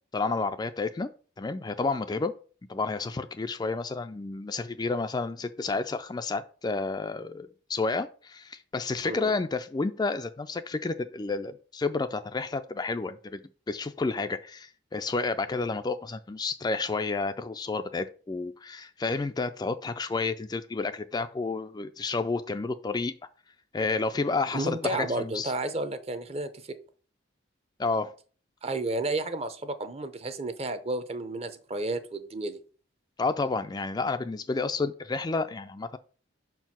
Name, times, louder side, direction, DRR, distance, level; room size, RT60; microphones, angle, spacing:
voice 1, 0.1-1.1 1.4-2.3 2.7-13.4 13.7-23.1 23.7-25.5 27.8-28.1 33.2-36.0, left 3 dB, 20° left, 0.3 m, -30 dB
voice 2, 24.5-26.8 28.6-32.6, right 2 dB, 30° right, 0.6 m, -32 dB
5.8 x 4.6 x 5.8 m
head